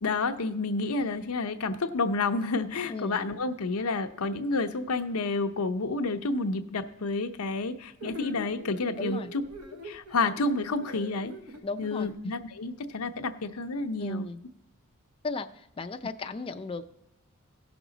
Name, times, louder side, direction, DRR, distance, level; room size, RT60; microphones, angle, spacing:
voice 1, 0.0-9.4 9.8-11.4 11.8-14.3, left 3 dB, 85° left, 8 dB, 0.7 m, -30 dB
voice 2, 2.9-3.2 9.0-9.3 11.6-12.1 14.0-14.4 15.2-16.8, left 3 dB, 25° left, 6 dB, 0.4 m, -36 dB
sound 1, 8.0-12.1, left 1 dB, 75° right, 1.1 m, -42 dB
16.0 x 6.1 x 3.9 m, 0.86 s
head